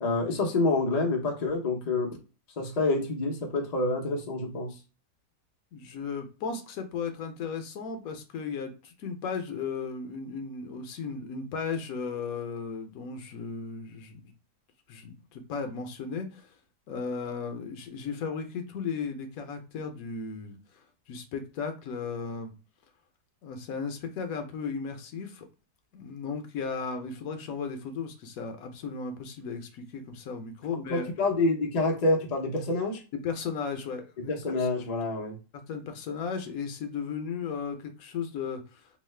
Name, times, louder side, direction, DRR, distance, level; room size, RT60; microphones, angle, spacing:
voice 1, 0.0-2.2 2.6-4.7 30.7-33.0 34.3-35.4, left 2 dB, 85° left, 0.3 m, -27 dB
voice 2, 5.7-14.2 14.9-16.5 16.9-20.5 21.1-22.5 23.4-25.5 25.9-31.0 33.2-34.3 34.6-34.7 35.7-38.8, left 5 dB, 70° left, 0.9 m, -35 dB
3.0 x 2.1 x 3.1 m
omnidirectional pair, 1.8 m